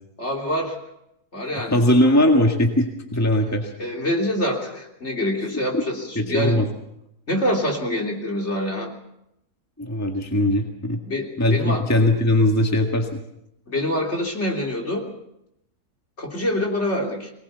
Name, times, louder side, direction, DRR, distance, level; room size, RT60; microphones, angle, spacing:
voice 1, 0.2-0.8 1.3-1.8 3.8-6.6 7.3-8.9 11.1-11.8 13.7-15.1 16.2-17.3, left 1 dB, 45° left, 0 dB, 3.6 m, -25 dB
voice 2, 1.7-3.7 6.1-6.7 9.8-11.0 11.4-13.2, left 1 dB, 10° left, 3 dB, 1.8 m, -20 dB
23.0 x 19.0 x 6.9 m, 0.82 s
omnidirectional pair, 1.6 m